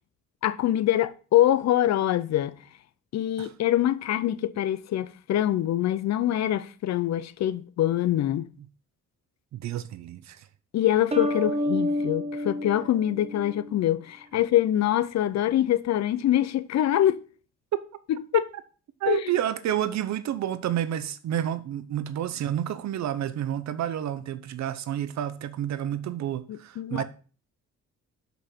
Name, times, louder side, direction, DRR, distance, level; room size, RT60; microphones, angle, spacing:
voice 1, 0.4-2.5 3.1-8.5 10.7-17.2 18.3-18.5 19.1-19.3 26.5-27.0, left 12 dB, 60° left, 0.6 m, -24 dB
voice 2, 9.5-10.4 19.0-27.0, right 11 dB, 65° right, 0.7 m, -30 dB
sound 1, 11.1-13.7, left 1 dB, 20° right, 0.8 m, -29 dB
6.3 x 5.3 x 4.3 m
cardioid pair, 90°, 30 cm